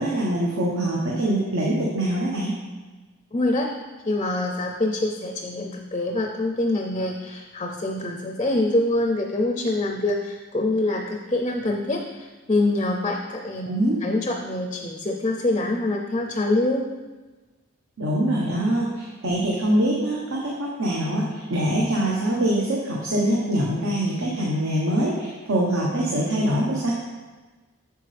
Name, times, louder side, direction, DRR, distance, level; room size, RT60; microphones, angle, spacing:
voice 1, 0.0-2.6 13.6-14.0 18.0-20.5 20.8-26.9, right 1 dB, 70° right, -4 dB, 1.1 m, -24 dB
voice 2, 3.3-3.7 4.1-13.7 14.0-16.9, left 2 dB, 25° left, 3 dB, 0.5 m, -25 dB
8.3 x 6.5 x 3.4 m, 1.3 s
head